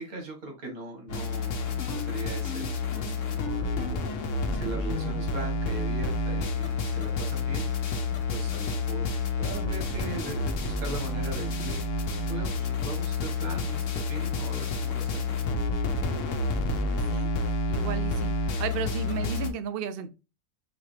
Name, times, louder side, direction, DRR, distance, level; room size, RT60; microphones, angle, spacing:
voice 1, 0.0-4.0 4.5-7.7 8.3-15.6, right 2 dB, 85° right, 2.0 m, -40 dB
sound 1, 1.1-19.5, left 3 dB, 65° left, 1.1 m, -29 dB
voice 2, 16.9-17.3 17.7-20.1, right 8 dB, 60° right, 0.6 m, -34 dB
5.0 x 2.9 x 3.2 m
omnidirectional pair, 1.5 m